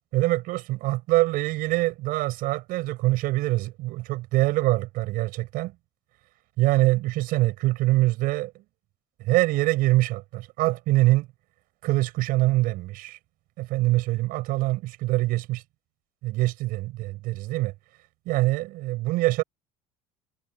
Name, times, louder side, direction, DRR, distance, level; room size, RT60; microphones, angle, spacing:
voice 1, 0.1-5.7 6.6-8.5 9.2-11.3 11.8-13.2 13.6-15.6 16.2-17.7 18.3-19.4, right 19 dB, 65° right, 7.3 m, -24 dB
supercardioid pair, 95°, 16 cm